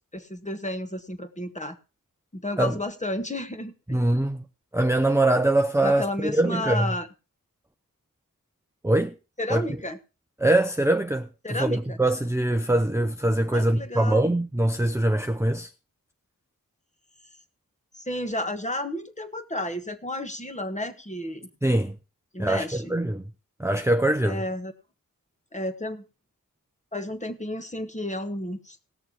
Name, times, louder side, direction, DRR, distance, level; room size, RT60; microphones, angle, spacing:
voice 1, 0.1-1.8 2.3-4.0 5.8-7.1 9.4-10.0 11.4-12.0 13.5-14.4 18.0-21.5 22.3-23.0 24.2-24.7 25.5-26.0 26.9-28.8, left 1 dB, 20° left, 1.4 m, -32 dB
voice 2, 3.9-4.4 4.7-6.9 8.8-9.1 9.5-9.7 10.4-15.7 21.6-21.9 22.4-23.2 23.6-24.4, right 1 dB, 10° right, 0.6 m, -23 dB
18.5 x 6.8 x 4.4 m
wide cardioid pair, 85°, 34 cm